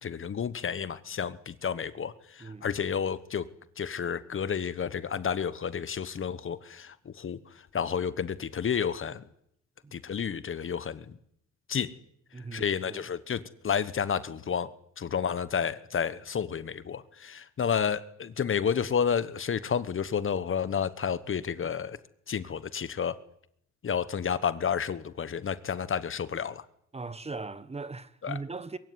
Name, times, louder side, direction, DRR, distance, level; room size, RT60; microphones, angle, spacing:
voice 1, 0.0-3.5 3.8-7.4 7.7-9.2 9.9-11.2 11.7-11.9 12.5-14.7 15.0-22.0 22.3-23.2 23.8-26.6 28.2-28.4, left 7 dB, 45° left, 1.2 m, -31 dB
voice 2, 2.4-2.8 9.8-9.9 12.3-13.1 26.9-28.8, right 3 dB, 20° right, 1.2 m, -39 dB
22.0 x 16.0 x 9.8 m
cardioid pair, 90°, 30 cm